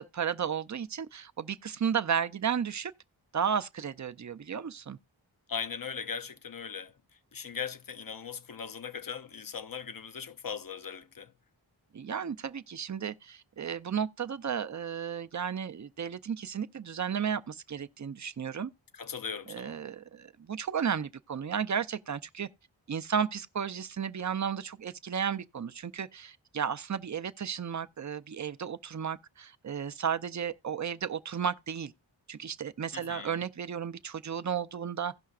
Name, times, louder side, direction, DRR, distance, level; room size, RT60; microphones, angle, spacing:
voice 1, 0.0-2.9 3.3-5.0 11.9-18.7 19.5-22.5 22.9-31.9 32.3-35.2, right 7 dB, 40° right, 0.5 m, -33 dB
voice 2, 5.5-6.9 7.3-11.3 19.0-19.8 32.9-33.4, left 6 dB, 50° left, 0.6 m, -39 dB
16.5 x 5.6 x 2.4 m
wide cardioid pair, 45°, 46 cm